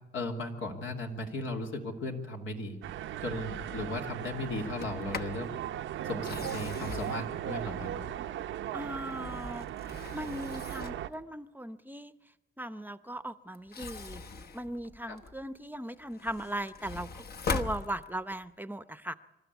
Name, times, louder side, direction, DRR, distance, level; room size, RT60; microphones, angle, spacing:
voice 1, 0.1-2.8 3.2-5.5 6.0-8.0 15.1-15.2, left 2 dB, 80° left, 2 dB, 2.9 m, -36 dB
sound 1, 2.8-11.1, right 11 dB, 90° right, 0.7 m, -38 dB
Sliding door, 4.6-5.4 6.1-8.4 9.0-11.1 13.5-15.5 16.0-18.5, left 4 dB, 55° left, 1.2 m, -40 dB
voice 2, 8.7-12.1 12.6-14.2 14.5-19.1, right 1 dB, 10° right, 13 dB, 0.7 m, -38 dB
26.0 x 12.5 x 8.2 m, 1.0 s
cardioid pair, 80°, 20 cm